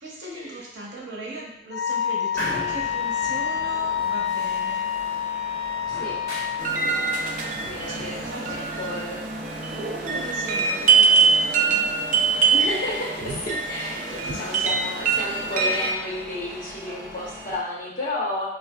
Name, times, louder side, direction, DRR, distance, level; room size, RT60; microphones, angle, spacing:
voice 1, 0.0-4.9 7.9-8.8 10.1-11.9 14.2-14.7 15.2-15.3, right 2 dB, 90° right, -2 dB, 0.8 m, -38 dB
Wind instrument woodwind instrument, 1.7-6.7, left 8 dB, 70° left, 0.3 m, -27 dB
sound 1, 2.3-17.6, equal, 15° left, 1.1 m, -39 dB
voice 2, 5.9-6.2 7.6-9.3 12.5-18.5, left 1 dB, 50° left, -6 dB, 1.0 m, -31 dB
sound 2, 6.6-15.9, right 5 dB, 45° right, 0.3 m, -23 dB
3.9 x 2.3 x 2.3 m, 0.78 s
head